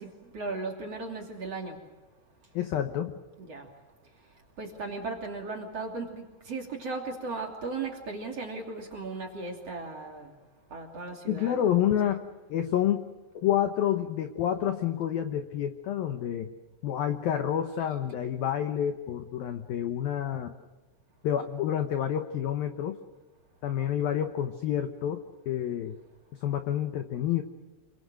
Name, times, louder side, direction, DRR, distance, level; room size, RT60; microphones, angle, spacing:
voice 1, 0.0-1.8 3.4-3.7 4.1-10.3 10.7-11.6, right 3 dB, 35° right, 1 dB, 3.0 m, -37 dB
voice 2, 2.5-3.1 11.3-12.2 12.5-13.1 13.3-16.5 16.8-20.5 21.2-23.0 23.6-26.0 26.4-27.4, left 10 dB, 80° left, 7 dB, 2.1 m, -28 dB
28.0 x 24.5 x 6.4 m, 1.2 s
omnidirectional pair, 5.9 m